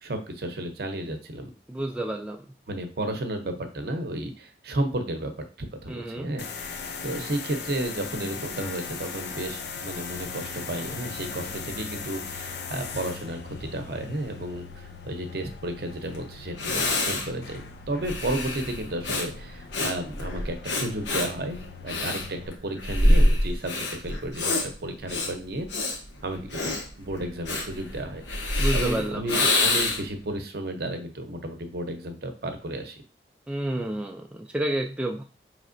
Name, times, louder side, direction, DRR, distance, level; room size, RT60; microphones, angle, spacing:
voice 1, 0.0-1.5 2.7-5.3 5.6-33.0, right 1 dB, 60° right, 6 dB, 0.7 m, -33 dB
voice 2, 1.7-2.4 5.9-6.3 28.6-29.2 33.5-35.2, right 1 dB, 5° right, 1 dB, 0.3 m, -30 dB
sound 1, 6.4-22.5, left 5 dB, 70° left, 0.5 m, -39 dB
Breathing, 16.1-16.2 16.6-30.2, left 1 dB, 85° left, 0.9 m, -26 dB
5.1 x 3.1 x 2.5 m, 0.37 s
head